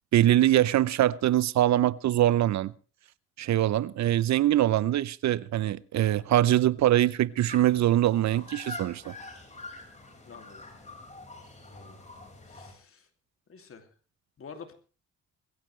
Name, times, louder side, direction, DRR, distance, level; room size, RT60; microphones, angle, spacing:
voice 1, 0.1-2.7 3.4-9.1, right 13 dB, 65° right, 0.7 m, -23 dB
sound 1, 7.5-12.7, left 2 dB, 25° left, 5.4 m, -45 dB
voice 2, 10.2-10.6 11.7-12.0 12.5-13.1 13.5-13.9 14.4-14.7, left 5 dB, 45° left, 2.7 m, -48 dB
21.5 x 15.5 x 3.3 m
cardioid pair, 90°, 30 cm